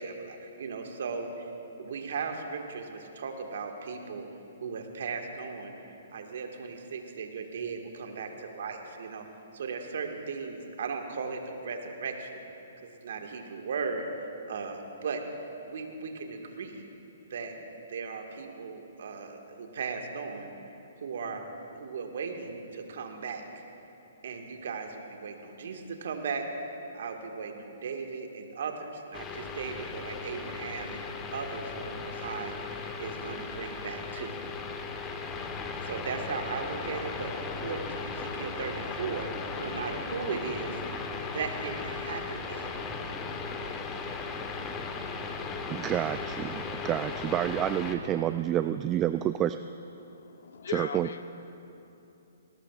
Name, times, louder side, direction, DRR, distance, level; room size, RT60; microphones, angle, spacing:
voice 1, 0.0-1.5 1.8-4.3 4.6-5.7 6.1-9.2 9.5-12.4 12.8-15.2 15.6-16.9 17.3-17.5 17.9-20.5 21.0-21.4 21.7-23.6 24.2-26.4 26.9-31.0 31.3-34.3 35.8-39.3 39.6-40.7 41.3-42.7, right 5 dB, 65° right, 3 dB, 1.7 m, -37 dB
sound 1, 29.1-47.9, left 4 dB, 20° left, 1.1 m, -37 dB
voice 2, 45.7-49.6 50.7-51.1, right 11 dB, 25° right, 11 dB, 0.3 m, -29 dB
voice 3, 50.0-51.2, left 6 dB, 70° left, 9 dB, 0.9 m, -39 dB
20.0 x 18.0 x 2.4 m, 2.9 s
hypercardioid pair, 130°, 0 cm